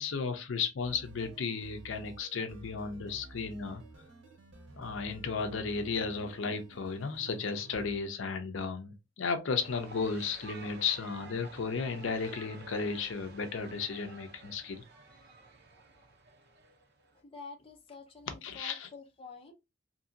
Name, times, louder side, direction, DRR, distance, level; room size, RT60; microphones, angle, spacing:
voice 1, 0.0-3.8 4.8-14.8 18.4-18.9, left 5 dB, 75° left, 0.5 m, -34 dB
sound 1, 0.8-8.0, right 2 dB, 85° right, 0.8 m, -51 dB
sound 2, 9.6-17.2, right 3 dB, 55° right, 0.7 m, -52 dB
voice 2, 17.2-19.5, left 3 dB, 30° left, 0.6 m, -48 dB
2.8 x 2.6 x 2.6 m
head